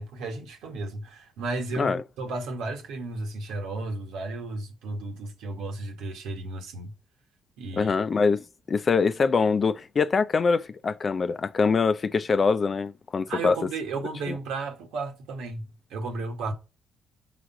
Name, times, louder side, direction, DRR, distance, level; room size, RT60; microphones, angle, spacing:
voice 1, 0.0-6.9 7.6-7.9 13.3-16.5, right 3 dB, 85° right, 1.7 m, -34 dB
voice 2, 7.7-13.6 14.3-14.4, left 5 dB, 40° left, 0.6 m, -24 dB
5.0 x 4.9 x 5.8 m
cardioid pair, 90°, 0 cm